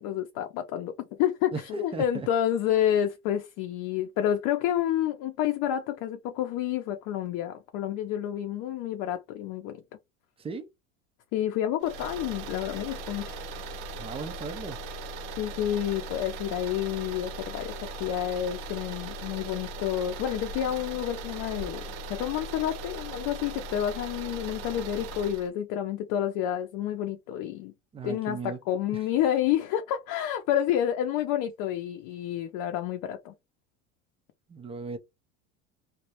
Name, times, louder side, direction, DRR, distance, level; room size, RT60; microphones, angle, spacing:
voice 1, 0.0-9.8 11.3-13.3 15.4-21.8 22.1-27.7 28.0-33.3, left 11 dB, 55° left, 0.5 m, -29 dB
voice 2, 1.9-2.3 10.4-10.7 14.0-14.8 27.9-28.6 28.9-29.0 34.5-35.0, right 4 dB, 15° right, 0.3 m, -36 dB
sound 1, 11.8-25.5, right 2 dB, 70° right, 0.7 m, -39 dB
2.2 x 2.0 x 2.8 m
supercardioid pair, 105°, 39 cm